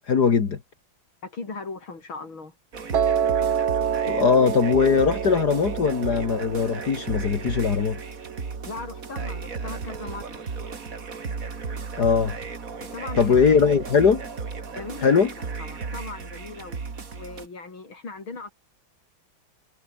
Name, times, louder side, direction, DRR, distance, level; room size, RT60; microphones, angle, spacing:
voice 1, 0.1-0.6 4.0-8.0 12.0-12.4 13.2-14.2 15.0-15.3, left 6 dB, 55° left, 2.4 m, -20 dB
voice 2, 1.2-2.5 8.6-10.5 12.8-13.8 14.7-16.8 17.1-18.5, left 3 dB, 85° left, 5.6 m, -38 dB
sound 1, 2.7-17.5, right 5 dB, 45° right, 2.6 m, -35 dB
Piano, 2.9-9.1, right 8 dB, 80° right, 2.5 m, -28 dB
omnidirectional pair, 2.2 m